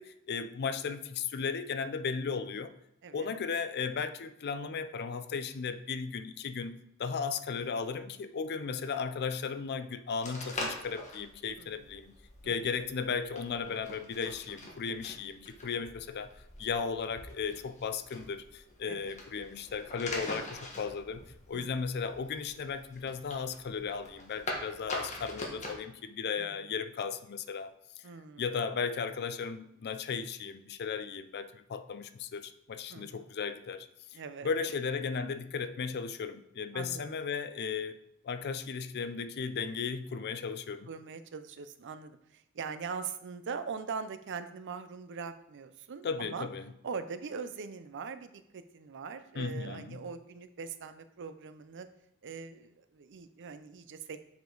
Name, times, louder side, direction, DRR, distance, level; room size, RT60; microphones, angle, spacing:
voice 1, 0.0-2.7 3.1-12.1 12.4-16.3 16.6-27.7 28.4-38.0 38.2-40.9 46.0-46.7 49.4-50.0, left 5 dB, 50° left, 12 dB, 0.4 m, -36 dB
sound 1, 10.2-25.8, left 1 dB, 35° left, 1.4 m, -44 dB
voice 2, 11.6-11.9 12.4-12.6 18.9-19.1 21.5-21.8 26.4-26.7 28.0-28.5 32.9-33.3 34.1-34.5 36.7-37.1 40.9-46.5 46.8-51.9 52.2-54.2, right 5 dB, 55° right, 11 dB, 0.5 m, -42 dB
7.1 x 5.1 x 3.9 m, 0.81 s
head